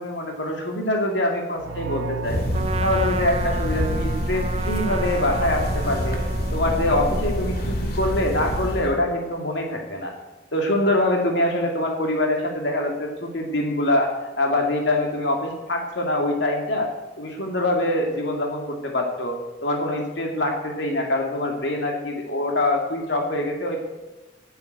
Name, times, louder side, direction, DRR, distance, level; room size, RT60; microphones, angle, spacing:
voice 1, 0.0-2.4 2.8-6.2 6.5-10.1 10.5-16.9 17.2-19.4 19.6-23.8, left 1 dB, 70° left, 1 dB, 2.2 m, -24 dB
sound 1, 1.6-4.4, right 5 dB, 90° right, 0.4 m, -36 dB
sound 2, 2.2-9.0, equal, 50° left, 2.3 m, -26 dB
Trumpet, 2.5-7.8, right 4 dB, 30° right, 0.5 m, -33 dB
9.8 x 9.0 x 9.1 m, 1.1 s
head